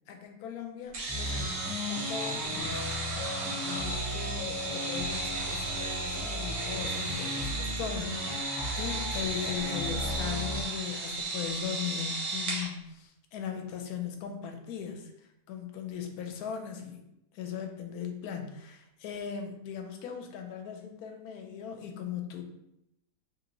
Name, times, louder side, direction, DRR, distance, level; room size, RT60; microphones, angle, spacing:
voice 1, 0.1-1.6 1.9-3.0 3.6-15.1 15.5-17.0 17.3-22.4, left 8 dB, 80° left, 4 dB, 1.1 m, -38 dB
sound 1, 0.9-12.7, right 2 dB, 80° right, 1.3 m, -35 dB
sound 2, 1.1-10.5, left 1 dB, 20° right, 0.6 m, -37 dB
3.2 x 2.6 x 2.9 m, 0.82 s
omnidirectional pair, 1.6 m